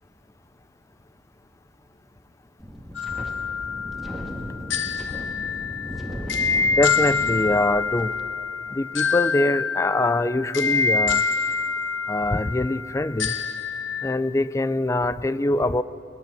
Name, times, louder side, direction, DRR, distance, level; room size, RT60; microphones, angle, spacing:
Wind, 2.6-8.2, equal, ahead, 2.0 m, -36 dB
sound 1, 2.9-14.2, left 5 dB, 75° left, 1.0 m, -26 dB
voice 1, 6.7-8.1 8.7-11.2 12.1-13.3 14.0-15.8, left 2 dB, 15° left, 16 dB, 0.4 m, -23 dB
22.5 x 20.5 x 7.1 m, 2.9 s
head